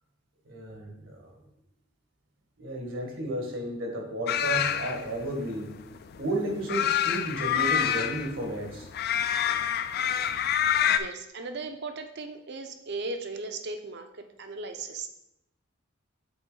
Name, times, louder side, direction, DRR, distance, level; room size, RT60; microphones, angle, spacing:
voice 1, 0.4-1.4 2.6-5.7 6.2-8.9, right 1 dB, 75° right, 1 dB, 1.5 m, -33 dB
sound 1, 4.3-11.0, left 9 dB, 50° left, 0.3 m, -27 dB
voice 2, 10.5-14.1 14.4-15.1, right 3 dB, 60° right, 7 dB, 0.7 m, -37 dB
7.9 x 4.1 x 3.8 m, 0.82 s
head